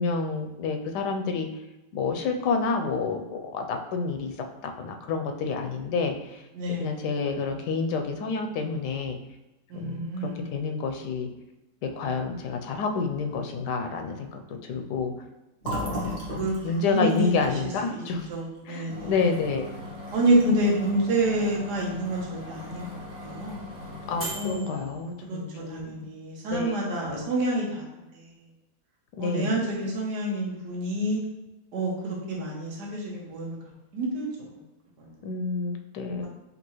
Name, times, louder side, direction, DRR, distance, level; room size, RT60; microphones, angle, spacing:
voice 1, 0.0-1.5 1.9-4.3 4.6-6.4 6.8-9.2 9.7-11.3 11.8-15.1 15.7-18.3 18.6-19.7 24.1-26.1 26.5-27.3 29.2-29.6 35.2-36.3, left 4 dB, 80° left, 4 dB, 1.2 m, -29 dB
voice 2, 6.5-7.0 9.7-10.6 15.8-16.5 16.8-17.5 18.3-19.1 20.1-23.0 23.2-23.7 24.3-24.8 25.3-27.8 29.2-31.2 31.7-33.6 33.9-34.3 35.0-35.1 36.2-36.3, right 1 dB, 75° right, -2 dB, 1.6 m, -28 dB
Fill (with liquid), 15.6-19.3 19.6-19.8 20.1-20.7, right 1 dB, 40° right, 1.1 m, -37 dB
sound 1, 18.9-25.4, left 1 dB, 10° right, 1.3 m, -40 dB
5.3 x 2.8 x 3.0 m, 1.0 s
omnidirectional pair, 1.8 m